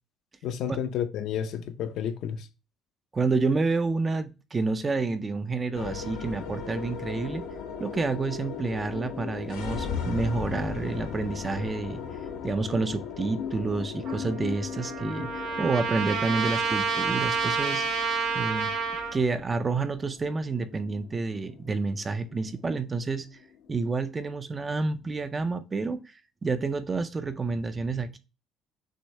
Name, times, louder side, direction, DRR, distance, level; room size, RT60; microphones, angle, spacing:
voice 1, 0.4-2.5, left 9 dB, 65° left, 0.6 m, -31 dB
voice 2, 3.1-7.4 7.8-12.0 12.4-17.9 18.3-18.7 19.1-23.3 23.7-28.2, right 3 dB, 20° right, 0.4 m, -29 dB
sound 1, 5.7-24.1, left 6 dB, 85° left, 0.9 m, -38 dB
Trumpet, 14.0-19.2, right 5 dB, 75° right, 1.7 m, -29 dB
6.2 x 2.7 x 3.1 m
cardioid pair, 155°, 0 cm